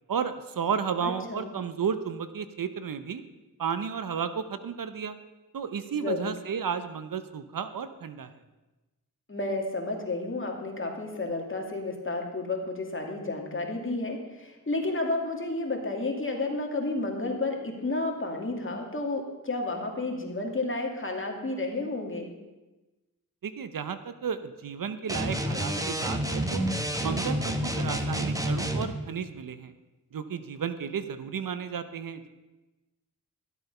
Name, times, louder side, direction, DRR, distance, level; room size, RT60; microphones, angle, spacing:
voice 1, 0.1-3.2 3.6-5.2 5.5-8.3 23.4-26.7 27.0-29.7 30.1-32.3, right 7 dB, 70° right, 11 dB, 0.8 m, -33 dB
voice 2, 1.0-1.5 5.9-6.3 9.3-22.3, left 2 dB, 35° left, 1 dB, 2.4 m, -31 dB
sound 1, 25.1-28.9, right 1 dB, 10° right, 1.2 m, -29 dB
13.0 x 8.1 x 5.5 m, 1.1 s
cardioid pair, 60°, 35 cm